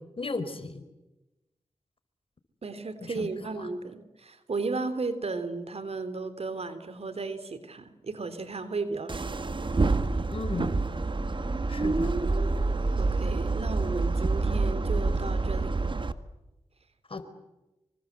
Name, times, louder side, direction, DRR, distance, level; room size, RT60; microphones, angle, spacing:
voice 1, 0.2-0.8 3.1-3.5 10.3-11.0 11.7-12.1 17.1-17.3, left 3 dB, 55° left, 10 dB, 4.4 m, -35 dB
voice 2, 2.6-9.4 13.0-16.0, right 3 dB, 65° right, 11 dB, 3.3 m, -34 dB
sound 1, 9.1-16.1, right 3 dB, 45° right, 1.8 m, -27 dB
26.0 x 25.0 x 8.1 m, 0.99 s
cardioid pair, 45°, 11 cm